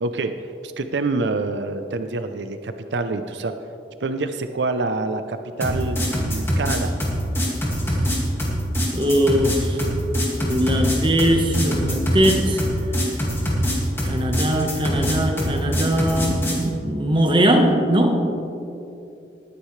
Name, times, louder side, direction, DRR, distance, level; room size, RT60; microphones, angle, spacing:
voice 1, 0.0-0.3 0.6-3.5 4.0-6.9, right 3 dB, 85° right, 8 dB, 0.6 m, -26 dB
sound 1, 5.6-16.6, equal, 15° left, 2.1 m, -23 dB
voice 2, 8.9-9.8 10.4-12.6 14.0-18.2, equal, 30° right, 2 dB, 1.2 m, -20 dB
20.0 x 9.7 x 3.3 m, 2.7 s
head